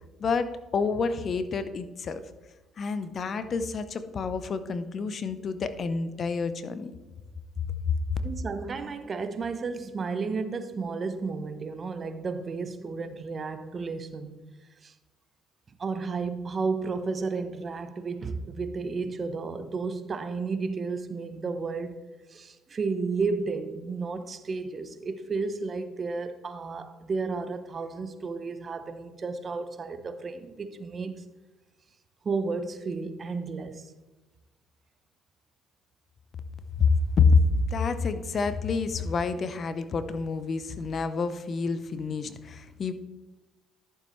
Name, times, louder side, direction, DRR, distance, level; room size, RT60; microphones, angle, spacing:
voice 1, 0.2-2.2 2.8-6.9 7.8-8.2 36.8-36.9 37.2-37.5 37.7-42.9, left 5 dB, 50° left, 0.7 m, -27 dB
voice 2, 8.2-14.4 14.8-14.9 15.8-22.0 22.3-31.3 32.2-33.9, right 4 dB, 40° right, 0.8 m, -32 dB
12.5 x 7.1 x 3.1 m
supercardioid pair, 75°, 0 cm